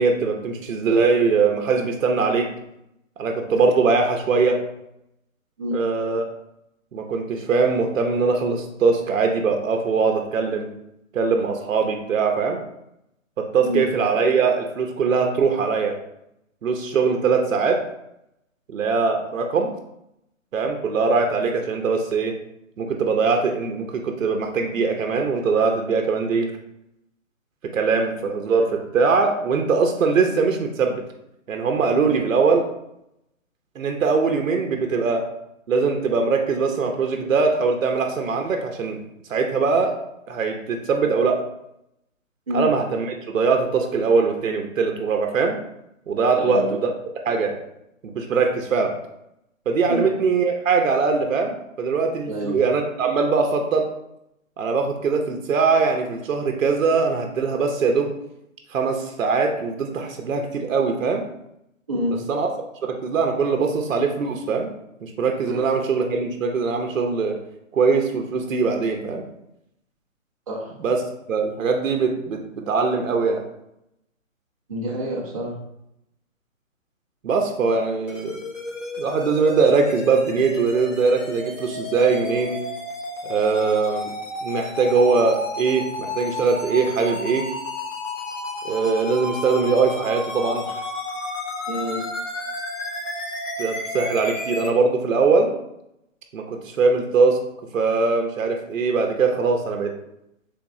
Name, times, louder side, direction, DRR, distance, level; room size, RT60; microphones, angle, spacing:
voice 1, 0.0-2.5 3.2-4.6 5.7-6.2 6.9-10.7 11.1-12.6 13.4-16.0 16.6-17.8 18.7-19.7 20.5-22.3 22.8-26.5 27.7-31.0 31.5-32.6 33.8-35.2 35.7-39.0 39.3-39.9 40.3-41.4 42.5-43.1 43.3-45.6 46.1-46.9 47.3-47.6 48.1-48.9 49.7-53.8 54.6-58.1 58.7-61.2 62.3-62.5 62.8-64.7 65.0-67.4 67.7-69.2 70.8-71.0 71.3-73.4 77.2-78.4 79.0-82.6 83.2-84.1 84.4-87.5 88.6-90.8 93.6-95.5 96.3-97.4 97.7-99.9, right 4 dB, 70° right, 3 dB, 0.7 m, -21 dB
voice 2, 46.3-46.8 49.9-50.2 52.3-52.6 61.9-62.2 65.5-65.7 70.5-70.7 74.7-75.5 91.7-92.0, equal, 25° right, -4 dB, 0.5 m, -27 dB
sound 1, 78.1-94.7, left 2 dB, 65° left, 1.4 m, -32 dB
3.5 x 3.0 x 3.5 m, 0.81 s
hypercardioid pair, 165°, 40 cm